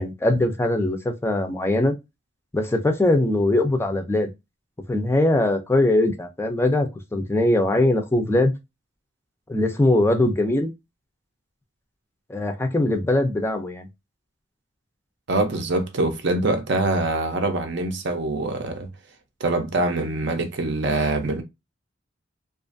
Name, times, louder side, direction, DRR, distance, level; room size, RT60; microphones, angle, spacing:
voice 1, 0.0-1.9 2.5-4.3 4.9-8.5 9.5-10.7 12.3-13.9, left 1 dB, 15° left, 0.4 m, -21 dB
voice 2, 15.3-18.9 19.4-21.4, right 2 dB, 65° right, 0.6 m, -24 dB
2.5 x 2.4 x 2.5 m
head